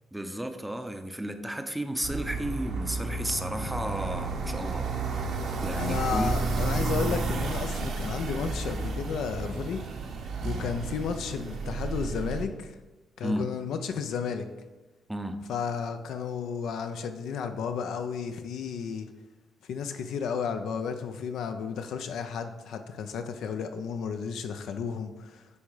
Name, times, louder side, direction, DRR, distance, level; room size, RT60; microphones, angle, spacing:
voice 1, 0.1-4.9 5.6-6.3 13.2-13.5 15.1-15.4, right 1 dB, 5° right, 7 dB, 0.7 m, -33 dB
sound 1, 2.0-12.4, right 3 dB, 70° right, 1.2 m, -31 dB
voice 2, 5.8-9.8 10.4-12.8 13.2-14.4 15.5-19.1 19.7-25.5, left 6 dB, 75° left, 7 dB, 0.7 m, -33 dB
9.5 x 3.5 x 4.9 m, 1.2 s
cardioid pair, 90°, 0 cm